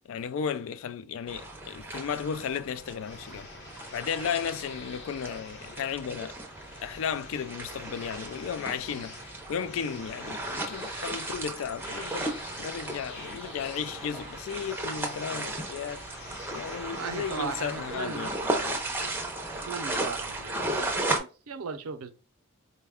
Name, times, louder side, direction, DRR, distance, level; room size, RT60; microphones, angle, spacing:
voice 1, 0.1-3.5 3.9-6.4 6.8-9.2 9.5-16.1 16.5-18.8, left 7 dB, 65° left, 0.3 m, -34 dB
sound 1, 1.2-20.0, left 2 dB, 50° left, 0.8 m, -48 dB
sound 2, 1.3-21.2, right 2 dB, 10° right, 0.5 m, -36 dB
voice 2, 17.0-18.4 18.9-19.1 19.5-22.1, right 5 dB, 85° right, 0.5 m, -38 dB
4.1 x 2.2 x 3.5 m
head